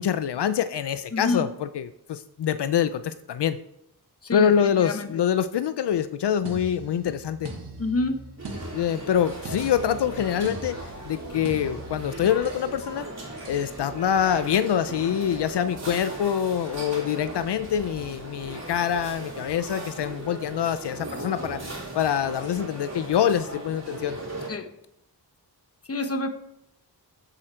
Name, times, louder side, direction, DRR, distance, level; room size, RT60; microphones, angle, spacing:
voice 1, 0.0-3.6 4.3-7.5 8.7-13.1 13.5-21.7 21.9-24.2, left 9 dB, 80° left, 12 dB, 0.6 m, -25 dB
voice 2, 1.1-1.4 4.2-5.2 7.8-8.2 24.5-24.7 25.9-26.3, left 2 dB, 35° left, 7 dB, 1.2 m, -28 dB
sound 1, 6.5-12.7 13.5-13.7, right 2 dB, 85° right, 2.5 m, -41 dB
sound 2, 8.4-24.5, right 2 dB, 40° right, 3.3 m, -38 dB
14.5 x 7.8 x 4.5 m, 0.80 s
wide cardioid pair, 160°, 40 cm